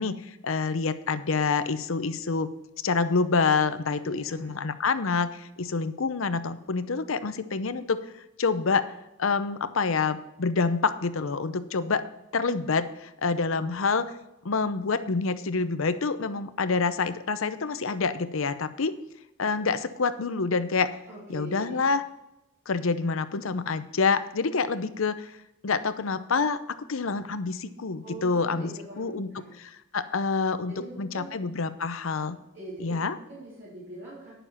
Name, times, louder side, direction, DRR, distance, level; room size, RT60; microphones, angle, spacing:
voice 1, 0.0-2.5 2.8-8.0 8.4-8.9 9.2-12.0 12.3-14.1 14.4-19.0 19.4-20.9 21.3-22.0 22.7-25.3 25.6-28.7 29.0-29.3 29.9-30.7 31.0-32.4 32.8-33.1, left 4 dB, 75° left, 12 dB, 0.7 m, -27 dB
voice 2, 4.0-4.5 21.1-21.8 28.0-29.6 30.6-31.3 32.5-34.3, right 2 dB, 55° right, -8 dB, 3.2 m, -43 dB
10.0 x 7.0 x 5.7 m, 0.91 s
head